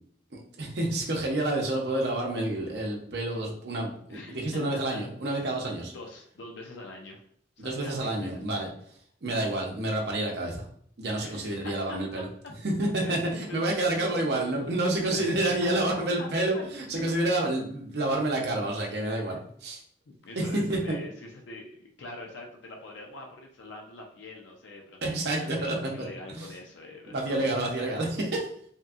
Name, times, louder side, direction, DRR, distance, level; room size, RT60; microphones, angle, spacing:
voice 1, 0.6-5.9 7.6-8.7 9.2-10.6 11.0-12.3 12.6-19.8 20.4-21.0 25.0-26.5 27.1-28.3, right 1 dB, 60° right, 0 dB, 0.6 m, -29 dB
voice 2, 4.1-5.0 5.9-7.2 7.6-8.7 11.2-12.2 13.0-13.7 13.9-14.4 15.1-16.3 16.5-16.6 19.3-19.4 20.2-25.0 25.3-28.0, left 2 dB, 80° left, 1 dB, 0.5 m, -44 dB
2.8 x 2.6 x 2.4 m, 0.63 s
head